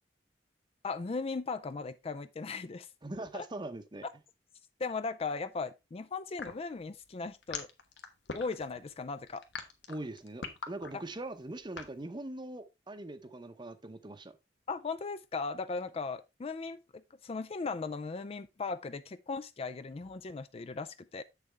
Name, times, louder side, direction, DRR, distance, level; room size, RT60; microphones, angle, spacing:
voice 1, 0.8-2.9 3.3-3.4 4.8-7.7 8.3-9.4 14.7-21.2, left 4 dB, 35° left, 0.4 m, -37 dB
voice 2, 3.0-4.1 9.9-14.4, right 2 dB, 25° right, 0.8 m, -42 dB
sound 1, 6.4-12.0, left 5 dB, 80° left, 1.2 m, -42 dB
7.6 x 6.8 x 3.3 m
head